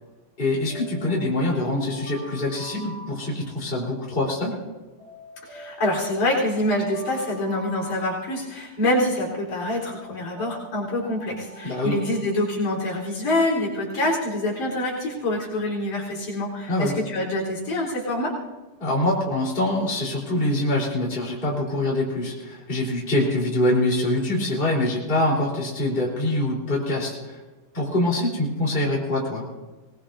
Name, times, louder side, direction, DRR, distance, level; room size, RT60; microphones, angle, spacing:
voice 1, 0.4-4.5 11.6-12.0 16.7-16.9 18.8-27.4 27.7-29.4, left 1 dB, 15° left, -3 dB, 3.7 m, -24 dB
sound 1, 0.7-3.9 5.0-8.7 9.9-13.1, right 1 dB, 50° right, 8.4 m, -44 dB
voice 2, 5.5-18.3, left 1 dB, 70° left, -3 dB, 5.3 m, -26 dB
23.5 x 19.0 x 2.6 m, 1.2 s
omnidirectional pair, 3.7 m